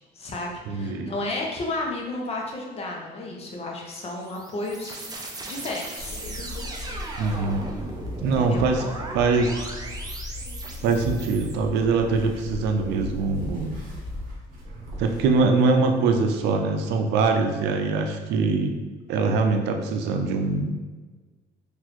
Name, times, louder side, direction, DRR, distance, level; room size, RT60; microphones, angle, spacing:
voice 1, 0.1-4.9 5.5-6.2 8.2-8.6, left 2 dB, 35° left, -1 dB, 0.8 m, -32 dB
voice 2, 0.7-1.1 7.2-7.6 8.2-8.8 9.1-9.6 10.8-13.8 15.0-18.8 19.1-20.7, right 4 dB, 85° right, 5 dB, 0.5 m, -23 dB
sound 1, 3.9-11.5, right 2 dB, 20° right, 0.5 m, -37 dB
sound 2, 6.0-14.3, left 1 dB, 60° left, 1.3 m, -37 dB
sound 3, 11.6-16.4, right 1 dB, 55° right, 1.0 m, -44 dB
4.0 x 2.6 x 3.0 m, 1.3 s
cardioid pair, 110°, 17 cm